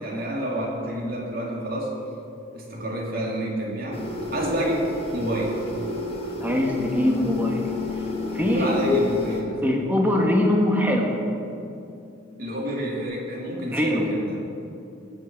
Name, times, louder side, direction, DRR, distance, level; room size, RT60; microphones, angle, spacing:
voice 1, 0.0-2.0 2.5-4.0 4.3-5.6 8.4-9.7 12.4-14.4, right 1 dB, 45° right, -2 dB, 2.5 m, -28 dB
sound 1, 3.9-9.4, left 1 dB, 30° left, 1.2 m, -33 dB
voice 2, 6.4-7.7 8.3-9.0 9.6-11.2 13.7-14.0, left 1 dB, 10° right, 0 dB, 1.5 m, -22 dB
Bass guitar, 6.8-13.0, left 6 dB, 75° left, 1.4 m, -37 dB
18.0 x 7.6 x 6.0 m, 2.6 s
head